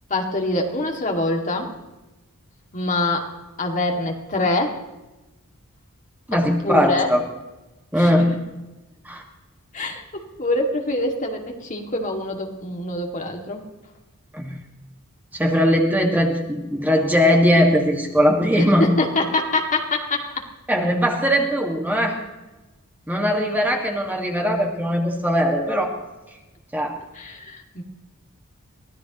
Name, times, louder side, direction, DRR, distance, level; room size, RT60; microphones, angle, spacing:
voice 1, 0.1-1.7 2.7-3.3 3.6-4.8 6.3-7.1 8.0-8.1 9.7-13.7 18.6-20.4 27.1-27.8, left 2 dB, 35° left, 2 dB, 2.3 m, -25 dB
voice 2, 6.3-7.2 7.9-8.3 9.1-9.2 14.3-14.6 15.3-18.9 20.7-22.2 23.1-25.9 26.7-27.0, equal, 10° right, 1 dB, 1.9 m, -20 dB
23.5 x 17.0 x 3.1 m, 1.1 s
head